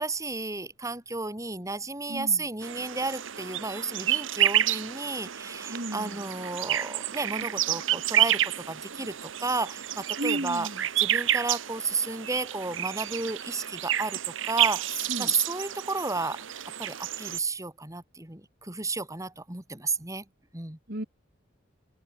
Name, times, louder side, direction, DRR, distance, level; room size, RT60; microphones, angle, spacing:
voice 1, 0.0-10.7 11.0-16.4 16.8-20.2 20.5-20.8, right 3 dB, 15° right, 2.4 m, -32 dB
voice 2, 2.1-2.5 5.7-6.3 10.2-10.8 15.0-15.3 20.9-21.0, right 1 dB, 50° right, 3.4 m, -34 dB
sound 1, 2.6-17.4, right 11 dB, 70° right, 1.0 m, -29 dB
head